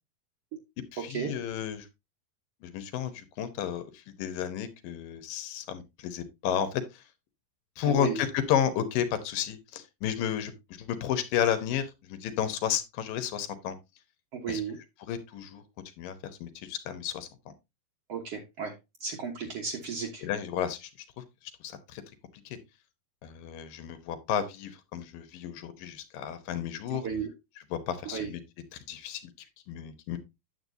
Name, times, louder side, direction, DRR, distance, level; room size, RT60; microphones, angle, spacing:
voice 1, 0.9-1.9 2.6-7.0 7.8-10.5 10.8-13.8 14.5-14.6 15.1-15.6 16.0-16.2 16.4-17.5 20.2-20.9 21.2-21.3 21.6-22.0 22.5-22.6 23.2-27.1 27.7-28.4 28.7-29.3 29.7-30.2, left 9 dB, 70° left, 11 dB, 2.4 m, -32 dB
voice 2, 7.8-8.2 14.3-14.8 18.1-18.7 19.0-20.3 26.9-27.3 28.1-28.3, right 6 dB, 70° right, -1 dB, 1.4 m, -34 dB
9.7 x 7.8 x 2.7 m, 0.23 s
omnidirectional pair, 4.6 m